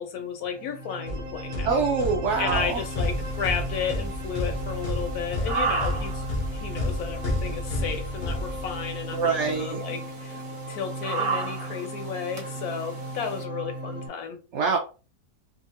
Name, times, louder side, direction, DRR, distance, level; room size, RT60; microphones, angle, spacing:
voice 1, 0.0-1.8 2.4-6.2 6.5-14.4, left 7 dB, 70° left, 1.0 m, -33 dB
sound 1, 0.5-14.1, right 1 dB, 50° right, 1.1 m, -37 dB
sound 2, 1.1-9.1, left 1 dB, 50° left, 0.6 m, -31 dB
voice 2, 1.6-2.8 9.1-9.8 14.5-14.8, right 5 dB, 80° right, 0.6 m, -25 dB
sound 3, 2.5-13.4, right 4 dB, 30° right, 0.5 m, -36 dB
2.9 x 2.4 x 2.7 m
omnidirectional pair, 1.8 m